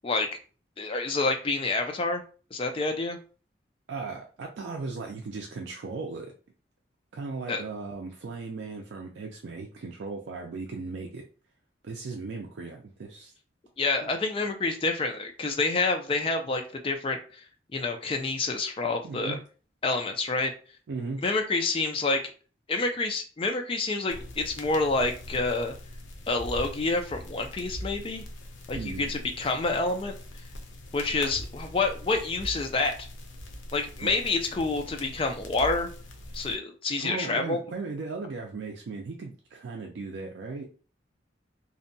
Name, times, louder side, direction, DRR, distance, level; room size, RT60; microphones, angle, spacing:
voice 1, 0.8-2.2 2.5-3.2 7.5-7.6 13.8-17.4 17.7-19.4 19.8-20.5 21.2-22.2 22.7-25.7 26.3-28.2 28.7-30.1 30.9-32.9 33.7-35.9 36.3-37.6, left 3 dB, 30° left, 4 dB, 0.3 m, -28 dB
voice 2, 3.9-6.3 7.1-11.2 11.8-13.3 14.0-14.1 19.0-19.4 20.9-21.2 28.7-29.1 34.0-34.1 37.0-40.7, right 4 dB, 75° right, 1 dB, 0.4 m, -37 dB
sound 1, 24.1-36.6, left 1 dB, 90° left, 0.5 m, -42 dB
2.6 x 2.1 x 2.6 m, 0.38 s
head